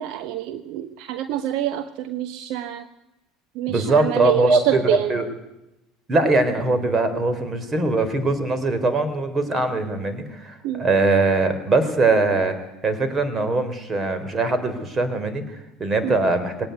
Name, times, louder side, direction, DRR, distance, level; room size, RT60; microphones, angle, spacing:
voice 1, 0.0-2.9 3.5-5.1 10.6-10.8 16.0-16.2, right 12 dB, 65° right, 11 dB, 1.0 m, -26 dB
voice 2, 3.7-5.3 6.1-12.6 12.8-16.7, right 3 dB, 30° right, 11 dB, 4.0 m, -21 dB
20.5 x 18.0 x 9.4 m, 0.94 s
hypercardioid pair, 75°, 0 cm